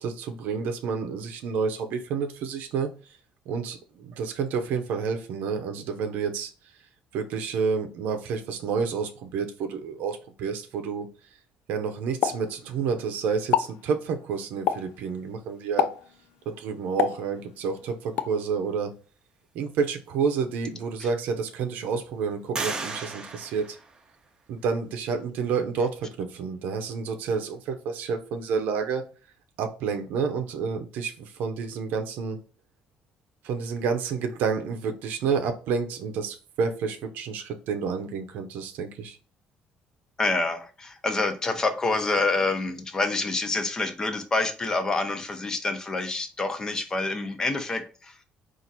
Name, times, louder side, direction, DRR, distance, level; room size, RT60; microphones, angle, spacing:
voice 1, 0.0-3.2 3.5-6.8 7.1-11.1 11.7-15.9 16.5-19.0 19.5-23.8 24.5-29.0 29.6-32.4 33.4-39.2, right 5 dB, 90° right, 5 dB, 0.6 m, -29 dB
Explosion, 12.2-13.1 13.4-13.8 14.7-15.0 15.8-16.2 17.0-17.7 18.2-18.4, left 10 dB, 80° left, 0.3 m, -27 dB
sound 1, 20.3-20.4 21.0-21.6 22.5-24.5, right 3 dB, 25° right, 0.7 m, -36 dB
voice 2, 40.2-48.2, left 3 dB, 20° left, 7 dB, 0.7 m, -27 dB
4.4 x 2.5 x 4.0 m, 0.36 s
cardioid pair, 145°, 3 cm